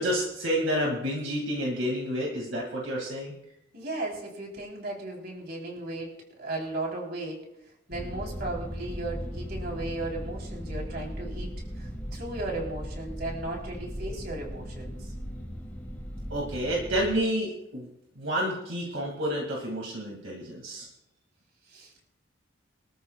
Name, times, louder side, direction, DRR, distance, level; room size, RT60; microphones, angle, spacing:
voice 1, 0.0-3.3 16.3-17.9 18.2-20.9, equal, 70° right, -2 dB, 2.3 m, -29 dB
voice 2, 3.7-6.1 6.4-7.4 7.9-11.5 11.8-15.1 21.7-22.0, right 2 dB, 50° right, -1 dB, 3.8 m, -36 dB
sound 1, 7.9-17.1, equal, 10° left, 1.8 m, -37 dB
24.5 x 13.5 x 2.4 m, 0.82 s
head